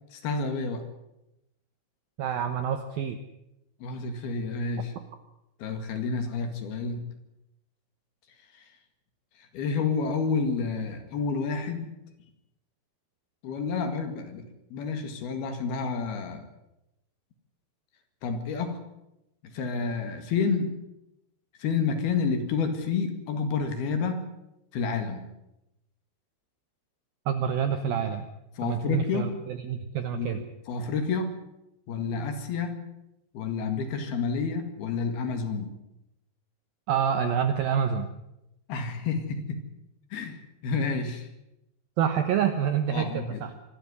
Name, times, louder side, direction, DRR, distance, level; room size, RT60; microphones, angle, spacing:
voice 1, 0.1-0.8 3.8-4.9 5.6-7.1 8.5-8.7 9.4-11.9 13.4-14.5 14.7-16.4 18.2-18.8 19.4-20.8 21.6-24.2 24.7-25.3 28.6-29.3 30.1-31.3 31.9-32.9 33.3-35.8 38.7-39.6 40.1-41.3 42.9-43.4, left 5 dB, 60° left, 7 dB, 3.6 m, -29 dB
voice 2, 2.2-3.2 27.3-28.3 28.6-30.4 36.9-38.1 42.0-43.5, right 8 dB, 75° right, 9 dB, 2.2 m, -27 dB
25.0 x 12.5 x 9.7 m, 0.89 s
omnidirectional pair, 5.6 m